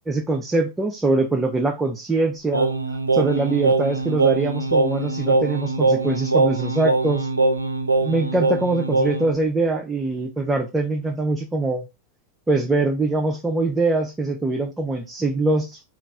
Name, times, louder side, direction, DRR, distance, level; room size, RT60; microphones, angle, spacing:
voice 1, 0.1-2.7 3.1-7.3 8.0-11.9 12.5-15.8, right 2 dB, 10° right, 0.5 m, -23 dB
Singing, 2.5-9.3, right 3 dB, 80° right, 0.4 m, -22 dB
4.1 x 2.5 x 3.3 m
figure-of-eight pair, 90°, 0 cm